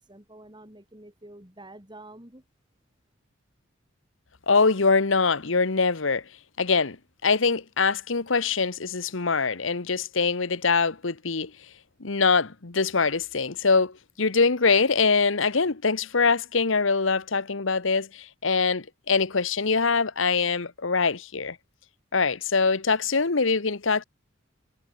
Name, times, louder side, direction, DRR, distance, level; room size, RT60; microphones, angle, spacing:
voice 1, 0.0-2.4, right 1 dB, 20° right, 5.2 m, -48 dB
voice 2, 4.5-6.3 6.6-7.0 7.2-11.5 12.0-21.6 22.1-24.0, left 4 dB, 70° left, 1.2 m, -23 dB
head